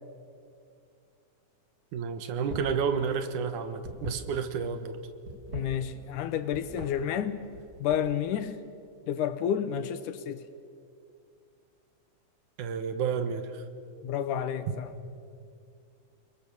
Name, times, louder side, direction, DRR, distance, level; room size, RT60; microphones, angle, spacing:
voice 1, 1.9-5.0 12.6-13.6, right 6 dB, 80° right, 9 dB, 2.8 m, -31 dB
sound 1, 2.4-2.8 3.1-4.7 5.2-6.2 6.5-6.9 7.4-8.2, right 1 dB, 45° right, 4.1 m, -41 dB
voice 2, 5.5-7.4 7.8-8.6 9.1-10.4 14.0-14.9, left 9 dB, 85° left, 11 dB, 2.6 m, -30 dB
30.0 x 21.0 x 7.2 m, 2.4 s
omnidirectional pair, 3.5 m